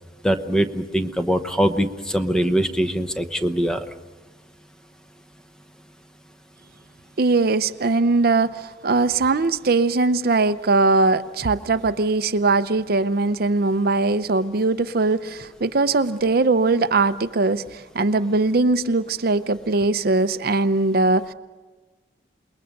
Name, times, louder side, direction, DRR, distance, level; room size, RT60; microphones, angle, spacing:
voice 1, 0.2-3.8, equal, 5° left, 0.9 m, -22 dB
voice 2, 7.2-21.3, right 3 dB, 55° right, 0.7 m, -20 dB
28.0 x 21.0 x 6.6 m
head